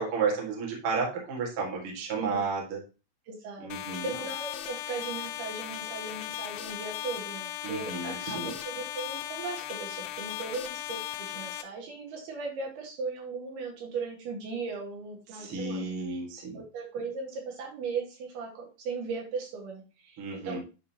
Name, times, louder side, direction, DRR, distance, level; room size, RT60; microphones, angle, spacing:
voice 1, 0.0-2.8 3.6-4.1 7.6-8.5 15.3-16.6 20.2-20.6, right 4 dB, 45° right, -2 dB, 2.1 m, -32 dB
voice 2, 3.3-15.9 16.5-20.6, right 4 dB, 75° right, -1 dB, 3.5 m, -38 dB
sound 1, 3.7-11.6, left 13 dB, 90° left, 2.8 m, -37 dB
10.5 x 3.7 x 2.9 m, 0.31 s
omnidirectional pair, 4.7 m